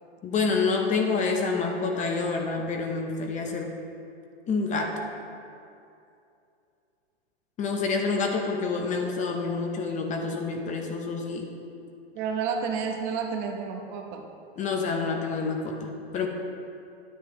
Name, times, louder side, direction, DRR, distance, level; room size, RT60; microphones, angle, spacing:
voice 1, 0.2-3.7 4.5-5.0 7.6-11.5 14.6-16.3, left 4 dB, 25° left, 2 dB, 0.8 m, -28 dB
voice 2, 12.1-14.2, right 6 dB, 45° right, 3 dB, 1.0 m, -30 dB
10.0 x 8.3 x 3.1 m, 2.6 s
hypercardioid pair, 120°, 32 cm